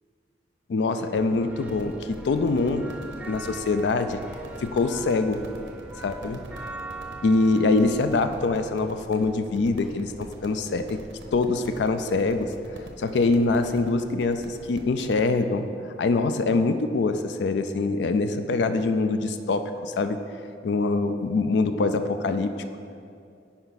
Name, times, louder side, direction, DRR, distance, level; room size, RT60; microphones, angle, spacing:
voice 1, 0.7-2.0 2.3-2.9 3.3-4.2 4.6-5.5 6.0-6.4 7.2-11.0 11.3-12.5 13.0-15.7 16.0-20.2 20.6-22.5, left 3 dB, 65° left, 9 dB, 0.4 m, -24 dB
sound 1, 1.0-8.7, right 2 dB, 10° right, 0.4 m, -41 dB
sound 2, 1.6-15.2, right 1 dB, 85° right, 0.9 m, -45 dB
10.0 x 4.4 x 4.0 m, 2.4 s
head